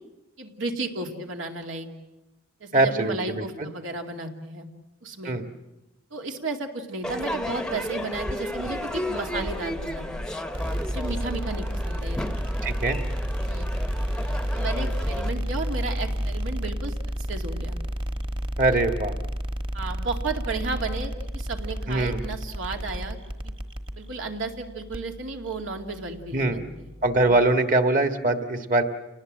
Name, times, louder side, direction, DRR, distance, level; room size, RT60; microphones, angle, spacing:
voice 1, 0.4-1.9 2.6-4.7 5.0-5.3 6.1-10.3 10.9-12.4 13.5-13.7 14.5-16.9 17.3-17.8 19.7-23.2 23.4-23.5 24.0-26.9 27.3-27.4, right 3 dB, 85° right, 3 dB, 2.6 m, -33 dB
voice 2, 2.7-3.7 5.2-5.4 12.6-13.0 18.6-19.1 21.9-22.2 26.3-26.6 27.0-28.8, right 2 dB, 40° right, 7 dB, 1.6 m, -22 dB
Crowd / Fireworks, 7.0-15.3, left 1 dB, 5° left, 0.8 m, -33 dB
sound 1, 10.5-27.5, equal, 25° right, 1.3 m, -31 dB
29.0 x 19.5 x 7.6 m, 1.0 s
head